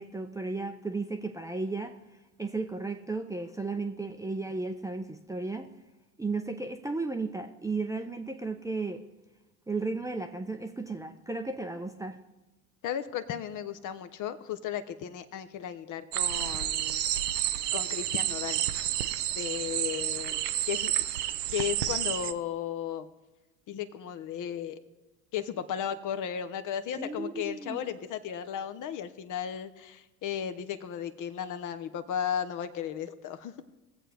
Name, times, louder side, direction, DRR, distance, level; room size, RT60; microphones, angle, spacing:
voice 1, 0.0-1.9 2.4-5.7 6.2-9.0 9.7-12.2 27.0-27.8, right 3 dB, 5° right, 4 dB, 0.6 m, -34 dB
voice 2, 12.8-17.0 17.7-18.6 19.4-20.4 20.7-20.9 21.5-23.1 23.7-24.8 25.3-33.5, left 9 dB, 40° left, 10 dB, 0.8 m, -35 dB
sound 1, 16.1-22.3, right 12 dB, 85° right, 0.6 m, -30 dB
21.0 x 7.7 x 3.4 m, 1.1 s
hypercardioid pair, 70°, 45 cm